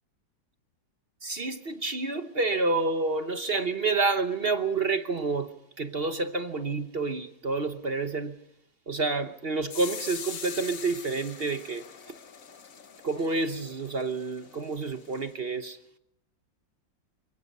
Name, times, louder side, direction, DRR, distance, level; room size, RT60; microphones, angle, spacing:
voice 1, 1.2-5.5 5.8-8.4 8.9-12.1 13.0-15.8, right 3 dB, 40° right, 0.9 m, -29 dB
sound 1, 9.7-15.3, left 7 dB, 50° left, 1.4 m, -43 dB
28.5 x 17.5 x 5.5 m
omnidirectional pair, 2.1 m